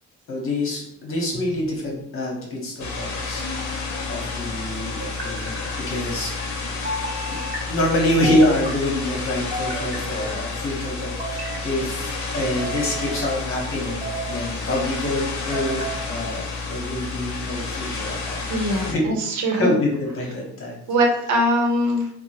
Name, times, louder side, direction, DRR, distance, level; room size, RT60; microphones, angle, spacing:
voice 1, 0.3-5.6 5.9-6.3 7.3-7.4 7.6-18.4 18.7-19.0 19.6-20.8, left 1 dB, 50° left, -1 dB, 1.0 m, -26 dB
sound 1, 1.3-2.0 3.4-4.1 5.0-5.8 6.8-7.6 8.2-8.9 9.5-10.4 11.0-11.6 12.4-13.3 13.9-14.4 15.2-16.0, right 1 dB, 35° right, 1.0 m, -33 dB
sound 2, 2.8-18.9, left 3 dB, 80° left, 0.6 m, -30 dB
voice 2, 18.5-19.7 20.9-22.1, equal, 85° right, 2 dB, 0.7 m, -21 dB
3.3 x 2.0 x 3.2 m, 0.80 s
cardioid pair, 130°, 29 cm